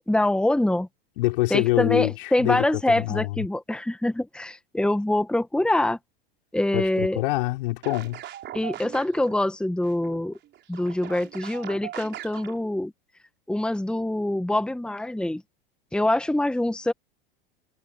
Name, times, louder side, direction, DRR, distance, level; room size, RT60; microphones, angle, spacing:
voice 1, 0.1-0.9 1.5-6.0 6.5-7.2 8.5-10.4 10.7-12.9 13.5-15.4 15.9-16.9, left 1 dB, 5° left, 1.7 m, -24 dB
voice 2, 1.2-2.6 3.0-3.4 6.7-8.2, left 20 dB, 65° left, 4.8 m, -25 dB
sound 1, 7.8-9.4 9.8-12.6, right 12 dB, 40° right, 4.7 m, -40 dB
hypercardioid pair, 90°, 29 cm